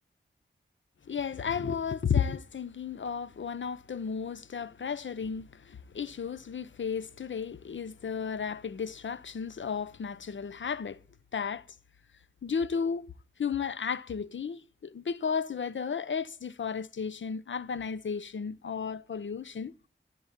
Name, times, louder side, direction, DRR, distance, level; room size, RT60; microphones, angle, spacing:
voice 1, 1.1-11.0 11.3-11.6 12.4-13.1 13.4-19.7, left 6 dB, 70° left, 0.9 m, -33 dB
13.5 x 8.5 x 7.5 m
cardioid pair, 40°, 20 cm